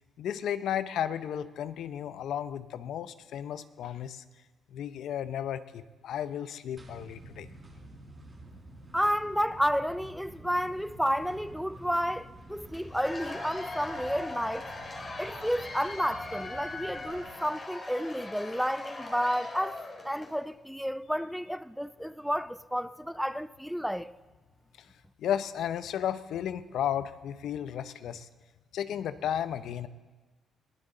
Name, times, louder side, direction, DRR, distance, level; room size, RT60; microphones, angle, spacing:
voice 1, 0.2-4.2 4.7-7.5 25.2-28.3 28.7-29.9, left 10 dB, 75° left, 0.7 m, -33 dB
sound 1, 6.8-17.3, right 1 dB, 25° right, 4.1 m, -49 dB
voice 2, 8.9-14.7 15.2-24.1, equal, ahead, 0.4 m, -31 dB
Cheering / Applause / Crowd, 12.7-20.4, left 2 dB, 30° left, 2.7 m, -40 dB
22.0 x 15.5 x 3.9 m
cardioid pair, 90°, 0 cm